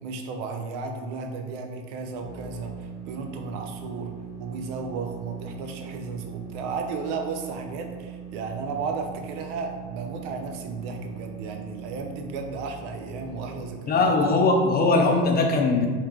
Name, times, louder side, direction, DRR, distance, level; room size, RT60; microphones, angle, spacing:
voice 1, 0.0-14.2, right 4 dB, 75° right, 4 dB, 0.7 m, -34 dB
sound 1, 2.0-13.8, right 7 dB, 10° right, 1.1 m, -41 dB
voice 2, 13.8-15.9, left 3 dB, 25° left, 2 dB, 0.6 m, -20 dB
3.6 x 2.6 x 3.7 m, 1.5 s
supercardioid pair, 105°, 36 cm